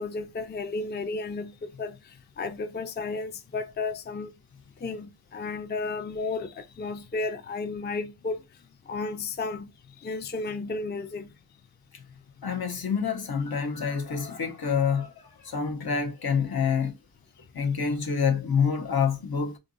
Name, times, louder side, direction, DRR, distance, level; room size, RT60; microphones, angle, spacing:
voice 1, 0.0-4.3 4.8-8.4 8.9-9.7 10.0-11.3, left 3 dB, 30° left, 0.4 m, -33 dB
voice 2, 12.4-16.9 17.5-19.6, left 6 dB, 70° left, 0.8 m, -27 dB
3.8 x 2.6 x 2.5 m
wide cardioid pair, 65°, 39 cm